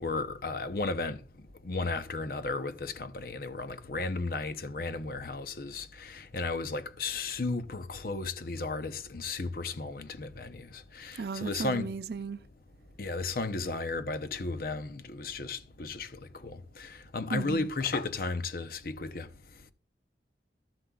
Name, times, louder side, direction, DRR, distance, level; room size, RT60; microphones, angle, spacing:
voice 1, 0.0-1.2 1.6-10.7 10.9-11.9 13.0-16.1 16.4-19.3, left 3 dB, 55° left, 0.7 m, -34 dB
voice 2, 11.1-12.4 17.3-17.7, right 5 dB, 60° right, 0.4 m, -35 dB
13.0 x 7.4 x 2.3 m
head